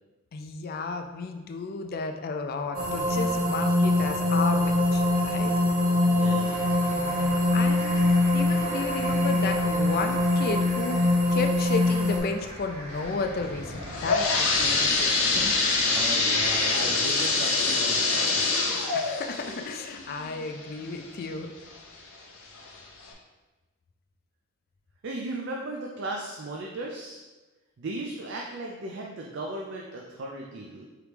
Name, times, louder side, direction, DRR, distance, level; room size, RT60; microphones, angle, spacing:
voice 1, 0.3-5.5 6.9-11.0 11.3-16.0 18.9-21.5, left 4 dB, 45° left, 5 dB, 0.3 m, -33 dB
sound 1, 2.7-12.2, left 2 dB, 70° right, 1.1 m, -23 dB
voice 2, 6.1-6.6 14.5-14.9 15.8-18.5 25.0-27.2 27.8-30.8, right 2 dB, 55° right, -1 dB, 0.4 m, -36 dB
sound 2, 6.4-16.2, right 1 dB, 30° right, 1.0 m, -42 dB
sound 3, 13.7-21.3 21.8-21.9 22.6-22.7 23.1-23.2, left 3 dB, 75° left, 0.7 m, -25 dB
4.8 x 3.0 x 3.3 m, 1.2 s
head